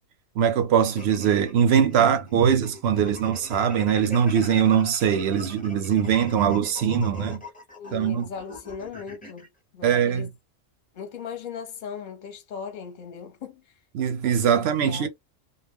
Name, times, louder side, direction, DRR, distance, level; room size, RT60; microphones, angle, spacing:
voice 1, 0.4-7.4 7.9-8.2 9.8-10.3 13.9-15.1, right 8 dB, 65° right, 0.7 m, -22 dB
sound 1, 0.8-9.5, left 2 dB, 10° left, 0.6 m, -43 dB
voice 2, 7.8-10.3 10.9-13.7 14.5-15.1, left 6 dB, 45° left, 0.8 m, -38 dB
2.2 x 2.1 x 3.4 m
omnidirectional pair, 1.4 m